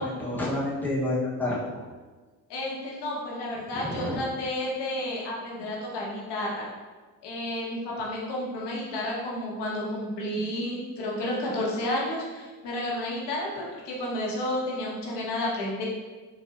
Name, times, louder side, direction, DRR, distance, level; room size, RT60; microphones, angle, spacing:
voice 1, 0.0-1.9 3.7-4.2, left 1 dB, 5° left, -6 dB, 1.0 m, -29 dB
voice 2, 2.5-6.7 7.2-15.8, left 1 dB, 65° left, -3 dB, 1.1 m, -31 dB
4.0 x 2.5 x 2.5 m, 1.3 s
hypercardioid pair, 60°, 45 cm